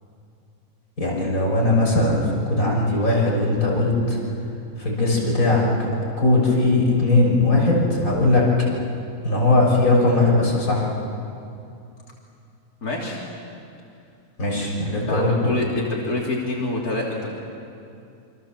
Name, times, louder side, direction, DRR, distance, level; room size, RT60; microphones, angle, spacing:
voice 1, 1.0-4.2 4.8-5.9 6.2-8.5 9.2-10.9 14.4-15.5, left 2 dB, 70° left, -2 dB, 6.7 m, -19 dB
voice 2, 12.8-13.2 15.1-17.4, left 2 dB, 90° left, -3 dB, 3.8 m, -26 dB
27.5 x 26.5 x 7.5 m, 2.6 s
omnidirectional pair, 1.5 m